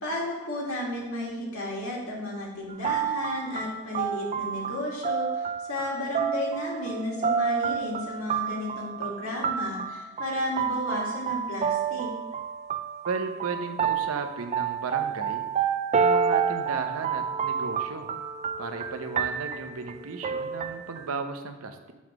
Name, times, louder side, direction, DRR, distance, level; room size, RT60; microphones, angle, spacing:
voice 1, 0.0-12.1, left 1 dB, 80° left, -2 dB, 1.9 m, -33 dB
sound 1, 2.7-21.0, right 7 dB, 30° right, 0.3 m, -29 dB
voice 2, 13.1-15.4 15.9-18.1 18.6-21.9, right 4 dB, 85° right, 7 dB, 0.7 m, -35 dB
7.1 x 3.1 x 6.0 m, 1.1 s
head